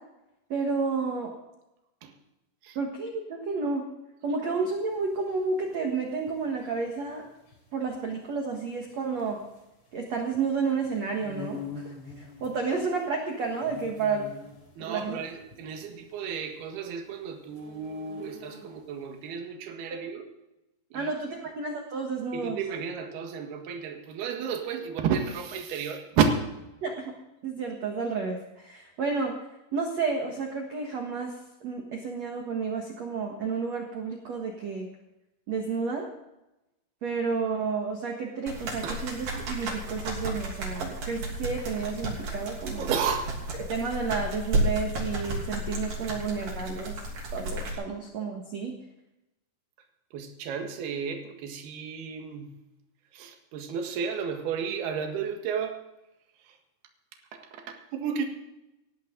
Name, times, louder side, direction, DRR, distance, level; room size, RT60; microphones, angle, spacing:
voice 1, 0.5-1.3 2.7-3.9 4.2-7.3 7.7-9.4 9.9-14.3 14.8-15.2 19.9-20.0 20.9-22.6 26.8-27.1 27.4-29.4 29.7-34.9 35.5-36.1 37.0-42.9 43.6-47.0 47.3-48.8, right 4 dB, 75° right, 2 dB, 1.5 m, -31 dB
sound 1, 4.8-19.0, left 5 dB, 30° left, 3.8 m, -46 dB
voice 2, 14.8-20.2 20.9-21.1 22.3-26.3 38.8-39.0 42.8-43.4 47.7-47.8 50.1-52.5 53.1-55.8 56.4-56.6 57.3-58.3, right 7 dB, 60° right, 4 dB, 3.2 m, -32 dB
sound 2, 38.5-47.7, right 1 dB, 45° right, 4.0 m, -33 dB
19.0 x 14.0 x 3.9 m, 0.94 s
omnidirectional pair, 5.9 m